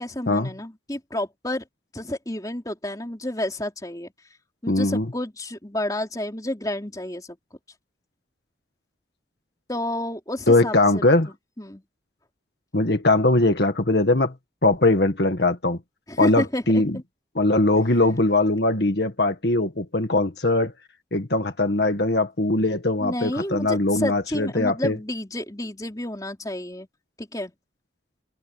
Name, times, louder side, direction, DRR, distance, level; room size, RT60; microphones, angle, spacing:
voice 1, 0.0-1.7 1.9-4.1 4.6-7.4 9.7-11.0 11.6-11.8 16.1-17.0 23.0-26.9 27.2-27.5, left 1 dB, 20° left, 3.7 m, -30 dB
voice 2, 4.7-5.1 10.5-11.3 12.7-14.3 14.6-15.8 16.2-17.0 17.4-20.7 21.1-25.0, left 2 dB, 65° left, 1.9 m, -21 dB
head